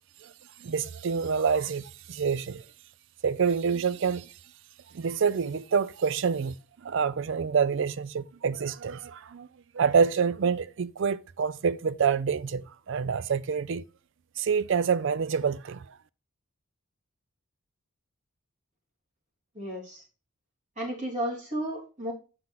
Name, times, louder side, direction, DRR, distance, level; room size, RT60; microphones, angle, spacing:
voice 1, 0.6-2.6 3.2-4.3 4.9-6.5 6.8-9.5 9.7-13.8 14.4-15.8, right 6 dB, 60° right, 0.4 m, -27 dB
voice 2, 19.5-20.0 20.8-22.1, right 1 dB, 35° right, 3.1 m, -33 dB
7.6 x 5.8 x 3.9 m
head